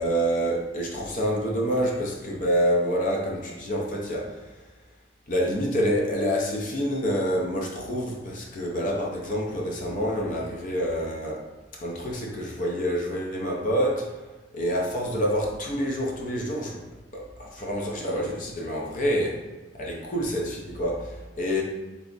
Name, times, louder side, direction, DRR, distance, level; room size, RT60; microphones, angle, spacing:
voice 1, 0.0-4.4 5.3-11.5 11.8-14.1 14.5-16.8 17.1-19.4 19.7-21.6, equal, 45° left, -1 dB, 0.5 m, -27 dB
3.4 x 2.0 x 3.8 m, 1.2 s
head